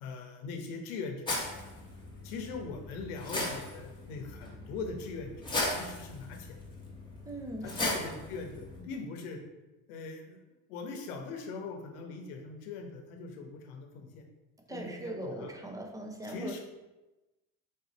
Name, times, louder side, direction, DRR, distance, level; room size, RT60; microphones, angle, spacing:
voice 1, 0.0-1.3 2.2-6.5 7.6-9.4 9.9-10.4 10.7-14.2 14.7-15.5 16.3-16.6, left 4 dB, 85° left, 4 dB, 0.9 m, -41 dB
sound 1, 1.3-8.8, left 2 dB, 10° left, 1.0 m, -37 dB
voice 2, 7.3-8.0 14.7-16.6, right 1 dB, 10° right, 2 dB, 0.5 m, -40 dB
3.9 x 2.7 x 3.9 m, 1.1 s
supercardioid pair, 105°, 42 cm